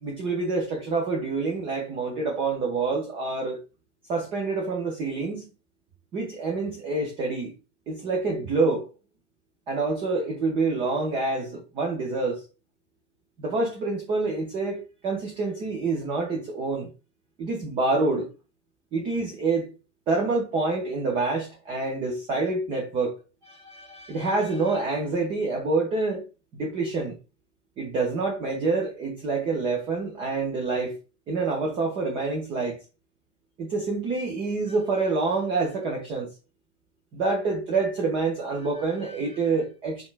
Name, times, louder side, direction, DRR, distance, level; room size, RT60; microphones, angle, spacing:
voice 1, 0.0-3.6 4.1-5.5 6.1-7.5 7.9-8.9 9.7-12.4 13.4-16.9 17.4-18.3 18.9-19.7 20.1-23.2 23.4-26.3 26.5-27.2 27.8-30.9 31.3-32.8 33.6-36.3 37.1-40.1, right 3 dB, 15° right, 0.4 m, -27 dB
5.2 x 2.3 x 2.3 m
hypercardioid pair, 110°, 36 cm